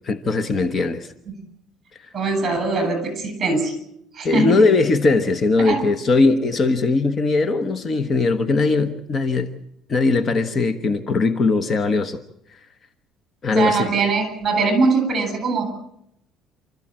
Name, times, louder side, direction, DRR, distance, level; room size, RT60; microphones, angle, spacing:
voice 1, 0.0-1.1 4.2-9.6 9.9-12.2 12.5-12.6 13.4-13.9, left 3 dB, 30° left, 1.2 m, -20 dB
voice 2, 2.1-3.7 4.1-4.6 5.6-5.8 13.5-15.7, right 3 dB, 30° right, 7.7 m, -21 dB
29.0 x 14.0 x 7.7 m
cardioid pair, 140°, 0 cm